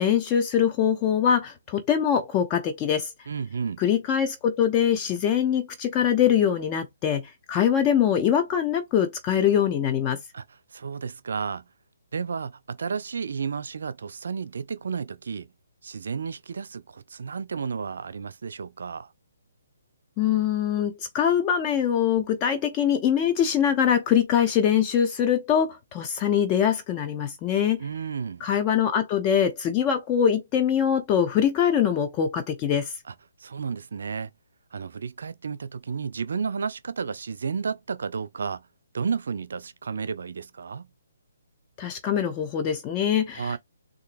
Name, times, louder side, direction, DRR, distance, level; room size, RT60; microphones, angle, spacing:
voice 1, 0.0-3.1 3.8-10.2 20.2-27.8 28.4-32.9 41.8-43.6, left 9 dB, 25° left, 0.7 m, -23 dB
voice 2, 3.3-3.8 10.3-10.4 10.7-11.6 12.1-15.5 15.8-19.1 27.8-28.5 33.1-33.2 33.4-34.3 34.7-38.7 38.9-40.9 43.3-43.6, right 6 dB, 65° right, 0.5 m, -32 dB
3.8 x 2.6 x 2.6 m
figure-of-eight pair, 140°, 0 cm